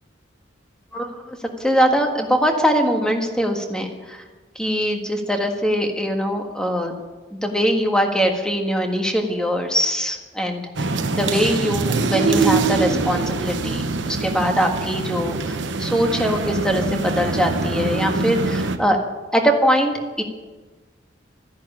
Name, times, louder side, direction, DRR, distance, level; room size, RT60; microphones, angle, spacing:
voice 1, 0.9-4.2 4.5-6.9 7.3-10.9 11.2-19.0 19.3-19.9 20.2-20.3, equal, 5° left, 3 dB, 1.6 m, -22 dB
sound 1, 10.8-18.8, right 3 dB, 75° right, 1.0 m, -24 dB
13.5 x 10.5 x 8.5 m, 1.3 s
head